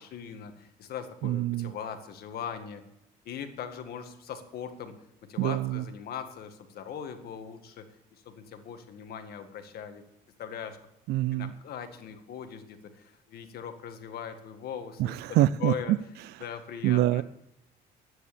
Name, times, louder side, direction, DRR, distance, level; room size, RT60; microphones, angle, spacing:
voice 1, 0.0-2.8 3.3-4.9 5.3-7.9 8.3-10.0 10.4-10.8 11.3-15.1 15.6-16.0 16.4-17.2, left 8 dB, 65° left, 8 dB, 1.8 m, -40 dB
voice 2, 1.2-1.7 5.4-5.9 11.1-11.5 15.0-16.0 16.8-17.2, right 15 dB, 75° right, 17 dB, 0.4 m, -25 dB
11.5 x 9.7 x 6.9 m, 0.83 s
cardioid pair, 110°, 17 cm